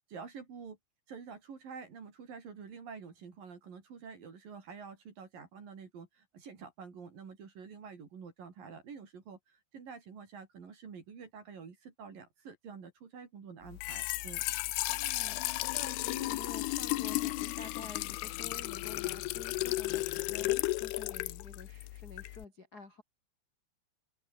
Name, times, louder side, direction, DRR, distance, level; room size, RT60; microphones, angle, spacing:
voice 1, 0.1-0.8 1.1-14.4, right 6 dB, 50° right, 5.0 m, -48 dB
Trickle dribble / Fill (with liquid), 13.7-22.4, left 19 dB, 85° left, 2.4 m, -34 dB
voice 2, 14.9-23.0, left 4 dB, 30° left, 1.9 m, -50 dB
open air
omnidirectional pair, 5.5 m